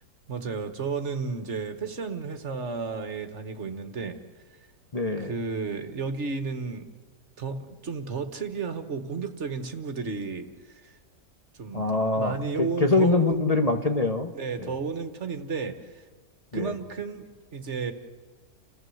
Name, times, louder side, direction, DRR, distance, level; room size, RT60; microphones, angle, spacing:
voice 1, 0.3-4.2 5.2-6.9 7.4-10.9 11.6-13.3 14.3-16.0 16.5-17.9, right 4 dB, 55° right, 9 dB, 1.6 m, -33 dB
voice 2, 4.9-5.3 11.7-14.3 14.6-14.7 16.5-16.7, left 3 dB, 30° left, 5 dB, 1.1 m, -24 dB
29.5 x 15.0 x 7.8 m, 1.4 s
omnidirectional pair, 1.5 m